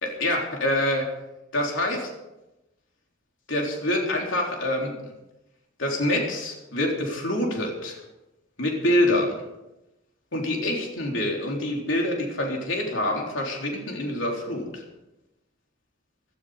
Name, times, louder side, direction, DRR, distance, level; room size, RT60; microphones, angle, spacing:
voice 1, 0.0-1.1 1.5-2.1 3.5-5.0 5.8-8.0 8.6-9.4 10.3-14.8, left 1 dB, 85° left, 0 dB, 3.7 m, -26 dB
17.0 x 12.5 x 5.1 m, 0.97 s
head